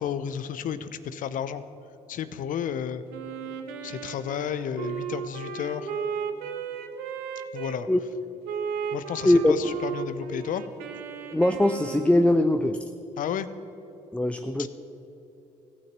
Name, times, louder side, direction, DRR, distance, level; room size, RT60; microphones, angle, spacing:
voice 1, 0.0-1.6 2.1-3.0 3.8-5.9 7.5-7.9 8.9-10.6 13.2-13.5 14.6-14.7, left 9 dB, 55° left, 13 dB, 0.7 m, -32 dB
Wind instrument woodwind instrument, 3.1-7.8 8.4-12.4, right 6 dB, 75° right, 0.9 m, -35 dB
voice 2, 11.3-12.8 14.1-14.7, left 1 dB, 5° left, 8 dB, 0.6 m, -21 dB
15.5 x 6.2 x 7.5 m, 2.9 s
hypercardioid pair, 55°, 16 cm